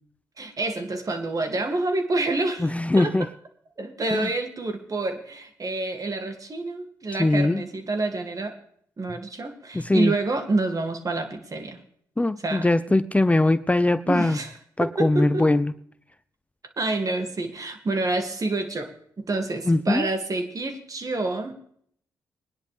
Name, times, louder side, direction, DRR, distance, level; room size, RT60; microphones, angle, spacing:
voice 1, 0.4-2.7 3.0-3.1 3.8-8.5 9.0-11.8 12.4-12.7 14.1-15.5 16.8-18.9 19.2-21.5, right 2 dB, 45° right, 5 dB, 2.3 m, -28 dB
voice 2, 2.6-3.3 4.1-4.3 7.2-7.6 9.7-10.1 12.2-14.4 14.8-15.7 19.7-20.1, left 2 dB, 15° left, 14 dB, 0.6 m, -21 dB
21.0 x 10.0 x 3.4 m, 0.63 s
supercardioid pair, 45°, 8 cm